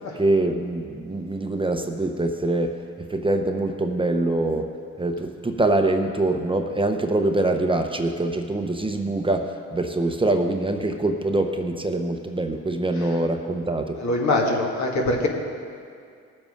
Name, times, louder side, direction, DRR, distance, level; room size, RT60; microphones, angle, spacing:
voice 1, 0.1-2.8 3.1-4.7 5.0-14.0, right 2 dB, 15° right, 5 dB, 0.8 m, -24 dB
voice 2, 14.0-15.3, left 2 dB, 65° left, 0 dB, 2.2 m, -22 dB
18.5 x 7.6 x 5.2 m, 2.3 s
cardioid pair, 90°, 30 cm